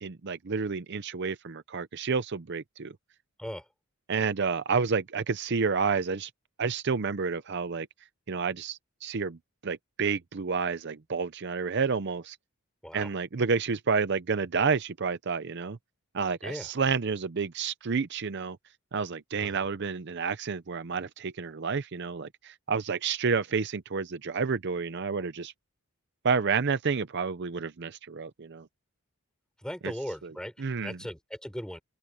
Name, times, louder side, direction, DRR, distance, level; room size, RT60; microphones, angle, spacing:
voice 1, 0.0-2.9 4.1-6.3 6.6-7.9 8.3-9.4 9.6-12.4 12.9-15.8 16.1-18.6 18.9-25.5 26.2-28.7 29.8-29.9 30.2-30.3 30.6-31.0, right 5 dB, 55° right, 0.6 m, -30 dB
voice 2, 29.6-30.5 30.8-31.8, equal, 5° left, 4.9 m, -38 dB
open air
head